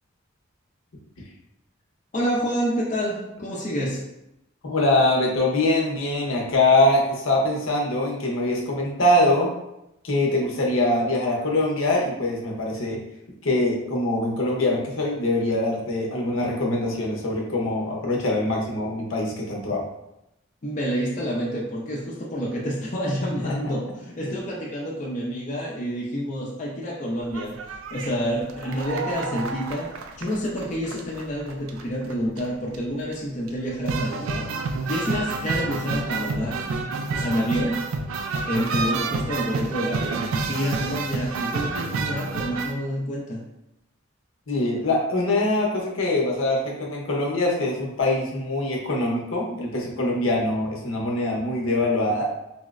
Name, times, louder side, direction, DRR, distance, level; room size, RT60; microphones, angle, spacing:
voice 1, 2.1-4.0 20.6-34.5 34.9-36.6 37.1-37.8 38.4-43.4, equal, 35° left, -4 dB, 0.5 m, -28 dB
voice 2, 4.6-9.5 10.0-13.0 13.4-19.8 23.4-23.5 24.2-24.3 44.5-52.2, left 2 dB, 70° left, -2 dB, 0.7 m, -23 dB
sound 1, 27.2-42.7, right 3 dB, 75° right, 0.3 m, -29 dB
4.1 x 2.0 x 2.4 m, 0.85 s
head